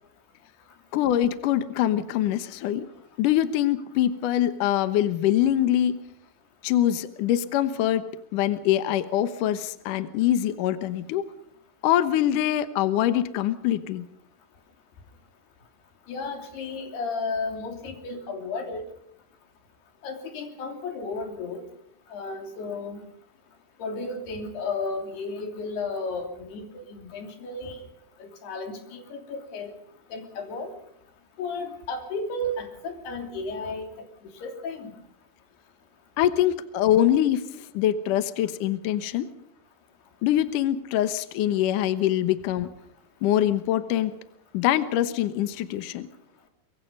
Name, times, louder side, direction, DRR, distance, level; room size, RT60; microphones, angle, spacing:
voice 1, 0.9-2.9 3.2-6.0 6.6-8.0 8.3-11.2 11.8-14.0 36.2-39.3 40.2-42.7 43.2-44.1 44.5-46.1, left 12 dB, 75° left, 11 dB, 1.9 m, -24 dB
voice 2, 16.1-18.9 20.0-21.6 22.1-23.0 23.8-27.8 28.2-29.8 30.1-30.7 31.4-33.9 34.4-34.9, left 3 dB, 60° left, 5 dB, 4.9 m, -33 dB
24.0 x 23.5 x 5.4 m, 0.71 s
omnidirectional pair, 5.4 m